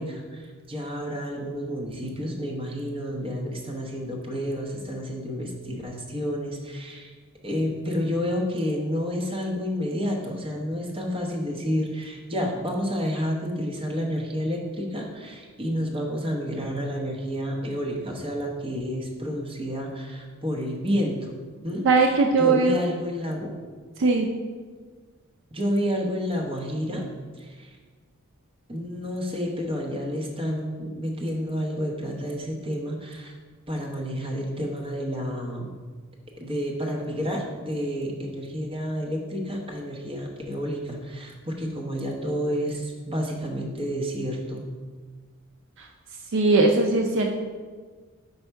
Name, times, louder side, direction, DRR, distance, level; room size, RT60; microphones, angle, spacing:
voice 1, 0.0-7.1 7.4-21.3 21.6-23.5 25.5-27.1 27.4-27.8 28.7-33.3 33.7-35.7 36.4-44.7, equal, 25° right, 0 dB, 0.9 m, -30 dB
voice 2, 21.8-22.8 24.0-24.3 45.8-45.9 46.3-47.3, right 3 dB, 60° right, 2 dB, 0.5 m, -20 dB
5.5 x 4.3 x 4.5 m, 1.5 s
head